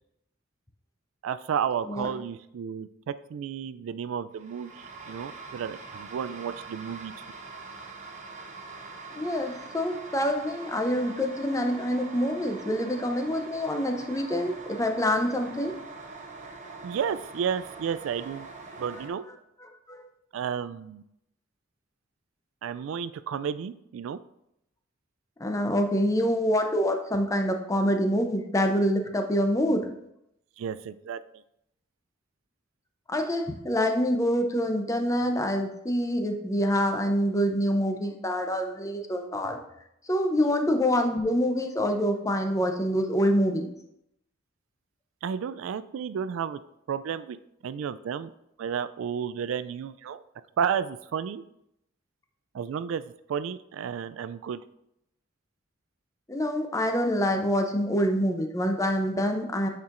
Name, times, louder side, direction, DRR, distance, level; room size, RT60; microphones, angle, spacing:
voice 1, 1.2-7.1 16.8-18.5 18.8-19.2 20.3-21.0 22.6-24.2 30.6-31.2 45.2-46.6 46.9-47.4 47.6-48.3 48.6-50.2 50.6-51.4 52.5-53.0 53.3-54.6, right 7 dB, 75° right, 14 dB, 0.3 m, -32 dB
sound 1, 4.3-19.1, right 3 dB, 35° right, 0.8 m, -43 dB
voice 2, 9.2-15.8 19.9-20.0 25.4-29.9 33.1-39.6 40.1-43.7 56.3-59.7, equal, 15° left, 5 dB, 0.6 m, -26 dB
8.4 x 4.5 x 2.5 m, 0.79 s
head